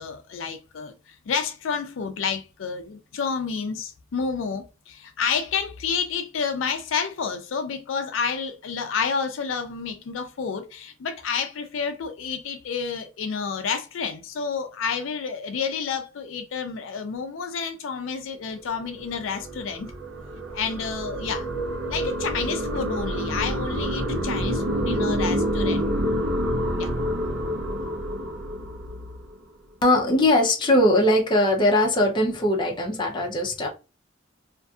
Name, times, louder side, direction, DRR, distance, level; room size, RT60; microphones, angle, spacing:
voice 1, 0.0-19.9 20.5-21.5 21.9-25.9 26.8-26.9, left 6 dB, 75° left, 0.4 m, -30 dB
sound 1, 18.8-29.4, equal, 70° right, 0.6 m, -28 dB
voice 2, 29.8-33.7, left 1 dB, 25° left, 0.6 m, -20 dB
2.5 x 2.5 x 2.3 m
head